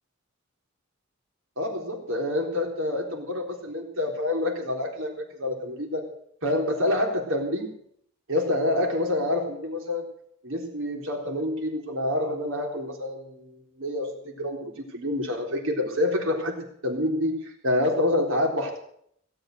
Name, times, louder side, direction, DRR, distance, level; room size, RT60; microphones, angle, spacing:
voice 1, 1.6-6.0 6.4-7.7 8.3-10.1 10.4-16.6 16.8-18.8, left 1 dB, 90° right, 1 dB, 3.9 m, -27 dB
17.0 x 8.1 x 8.0 m, 0.67 s
head